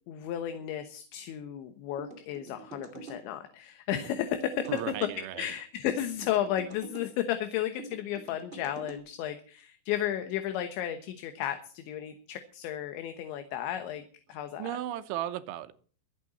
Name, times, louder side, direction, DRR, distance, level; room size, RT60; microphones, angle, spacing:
voice 1, 0.1-5.1 5.4-14.0 14.3-14.7, left 11 dB, 75° left, 8 dB, 3.4 m, -33 dB
sound 1, 2.0-3.2 3.9-5.1 5.8-7.1 7.8-9.0, right 3 dB, 30° right, 1.1 m, -45 dB
voice 2, 4.7-5.5 14.6-15.7, right 12 dB, 80° right, 11 dB, 3.3 m, -35 dB
24.5 x 8.9 x 4.2 m, 0.43 s
omnidirectional pair, 5.5 m